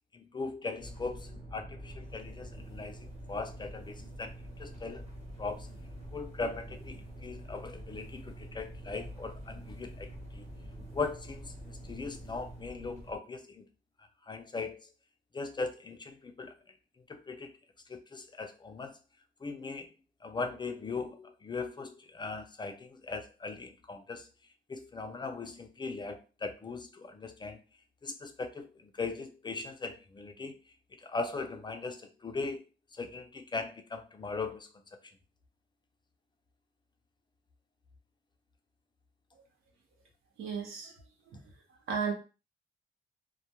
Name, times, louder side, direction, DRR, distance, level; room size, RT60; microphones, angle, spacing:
voice 1, 0.1-4.3 4.6-5.0 5.4-5.7 6.1-10.1 10.3-10.4 10.9-13.6 14.3-14.8 15.3-16.5 17.1-17.5 17.9-18.9 19.4-19.9 20.2-24.3 24.7-27.6 28.0-28.7 29.0-30.5 31.0-32.6 33.0-34.7, left 4 dB, 25° left, 6 dB, 0.3 m, -39 dB
sound 1, 0.8-13.2, right 1 dB, 35° right, 1.1 m, -46 dB
voice 2, 40.4-40.9 41.3-41.4 41.9-42.1, right 6 dB, 85° right, 2 dB, 0.8 m, -33 dB
2.1 x 2.1 x 2.9 m, 0.32 s
cardioid pair, 90°, 20 cm